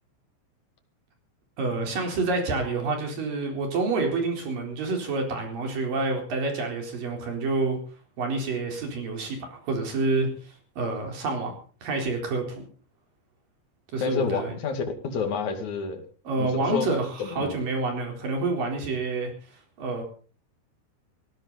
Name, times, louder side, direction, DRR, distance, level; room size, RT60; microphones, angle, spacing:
voice 1, 1.6-7.8 8.2-11.5 11.8-12.6 13.9-14.5 16.3-19.3 19.8-20.0, right 3 dB, 50° right, 3 dB, 5.6 m, -28 dB
voice 2, 14.0-16.0 16.4-16.9 17.2-17.6, left 5 dB, 50° left, 5 dB, 3.2 m, -29 dB
18.5 x 16.5 x 4.1 m, 0.40 s
omnidirectional pair, 5.1 m